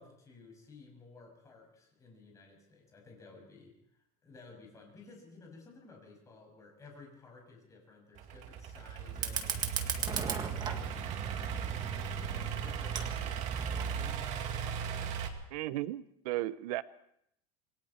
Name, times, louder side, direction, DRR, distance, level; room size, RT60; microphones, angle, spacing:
voice 1, 0.0-3.7 4.2-11.5 12.0-15.2, left 3 dB, 15° left, 1 dB, 6.5 m, -55 dB
Idling / Accelerating revving vroom, 8.2-15.3, right 7 dB, 40° right, 2.2 m, -37 dB
Fire, 9.1-14.1, right 6 dB, 20° right, 1.8 m, -38 dB
voice 2, 15.5-16.8, right 16 dB, 85° right, 14 dB, 0.9 m, -35 dB
27.5 x 21.5 x 4.4 m, 0.74 s
cardioid pair, 175°, 19 cm